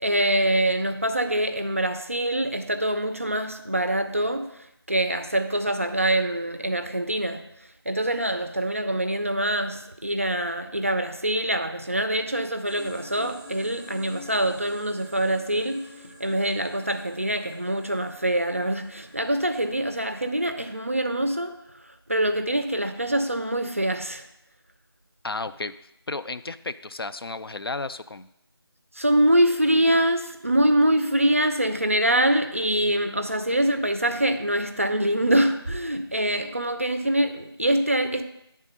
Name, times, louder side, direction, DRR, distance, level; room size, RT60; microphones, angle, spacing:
voice 1, 0.0-4.5 4.9-7.5 7.9-15.9 16.2-21.6 22.1-24.3 29.0-38.2, right 1 dB, 30° right, 0.4 m, -24 dB
sound 1, 12.6-21.4, left 1 dB, 5° left, 0.8 m, -48 dB
voice 2, 25.2-25.7 26.1-28.3, left 3 dB, 65° left, 0.4 m, -33 dB
10.0 x 3.6 x 5.4 m
figure-of-eight pair, 170°, 14 cm